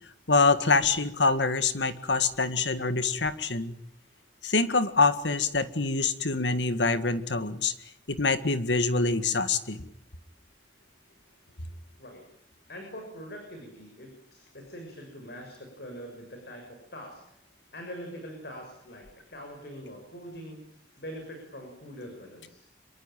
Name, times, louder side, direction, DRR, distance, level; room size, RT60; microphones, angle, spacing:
voice 1, 0.3-3.7 4.4-7.7 8.1-9.9, left 3 dB, 80° left, 11 dB, 1.9 m, -25 dB
voice 2, 12.7-17.2 17.7-20.6 21.0-22.7, equal, 65° left, 3 dB, 6.7 m, -43 dB
26.5 x 23.5 x 9.1 m, 0.71 s
head